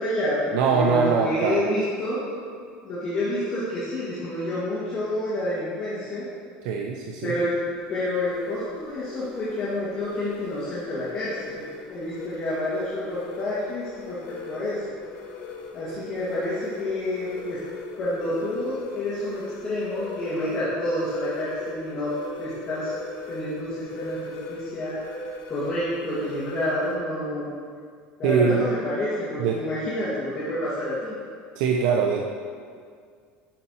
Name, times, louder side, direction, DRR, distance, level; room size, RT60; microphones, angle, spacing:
voice 1, 0.0-2.2 2.8-6.2 7.2-7.5 7.9-14.2 14.5-14.8 15.7-17.6 18.0-22.1 22.4-23.0 23.3-25.0 25.5-27.5 28.2-31.1, left 1 dB, 30° left, -11 dB, 1.6 m, -28 dB
voice 2, 0.5-1.6 6.6-7.3 28.2-28.7 29.4-29.6 31.6-32.3, right 6 dB, 70° right, 0 dB, 0.5 m, -22 dB
sound 1, 7.3-27.0, left 4 dB, 55° left, 0.7 m, -40 dB
10.0 x 5.3 x 2.8 m, 2.1 s
cardioid pair, 155°, 4 cm